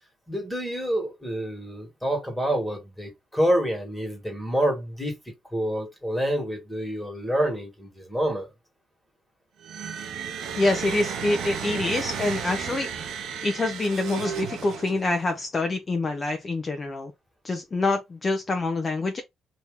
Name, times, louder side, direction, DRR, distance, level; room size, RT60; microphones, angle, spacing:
voice 1, 0.3-5.2 5.5-8.5, right 1 dB, 5° left, 1.6 m, -27 dB
sound 1, 9.6-15.3, right 7 dB, 80° right, 0.9 m, -33 dB
voice 2, 10.6-12.9 13.4-17.1 17.4-19.2, left 2 dB, 35° left, 0.6 m, -26 dB
2.8 x 2.7 x 3.5 m
cardioid pair, 90°, 0 cm